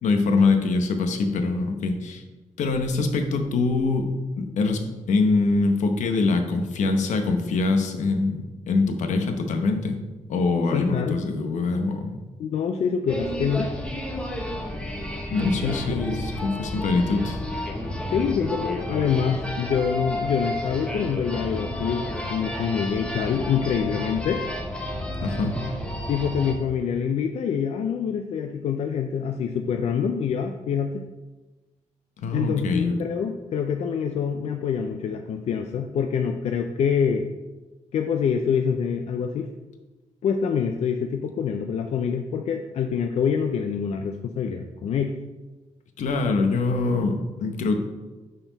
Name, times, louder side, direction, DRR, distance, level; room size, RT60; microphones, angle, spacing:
voice 1, 0.0-2.2 2.6-4.1 4.4-10.0 10.3-12.1 15.3-17.4 25.2-25.6 32.2-33.0 46.0-47.8, left 3 dB, 75° left, 6 dB, 0.9 m, -24 dB
voice 2, 10.7-11.2 12.4-13.7 15.6-16.3 18.1-24.4 26.1-31.0 32.3-37.2 37.9-39.5 40.2-45.1, left 7 dB, 60° left, 5 dB, 0.4 m, -26 dB
sound 1, 13.1-26.5, left 1 dB, 10° left, 0.9 m, -31 dB
10.0 x 4.3 x 4.0 m, 1.2 s
wide cardioid pair, 155°, 13 cm